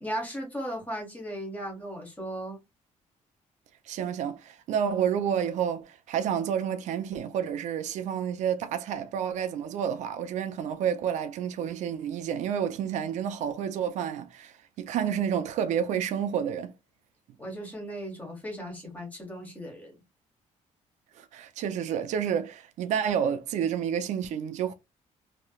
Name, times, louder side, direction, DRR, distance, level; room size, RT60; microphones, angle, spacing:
voice 1, 0.0-2.6 17.4-20.0, equal, 10° left, 1.3 m, -36 dB
voice 2, 3.9-16.7 21.2-24.7, right 8 dB, 65° right, 0.4 m, -30 dB
3.1 x 2.9 x 2.2 m
cardioid pair, 170°, 13 cm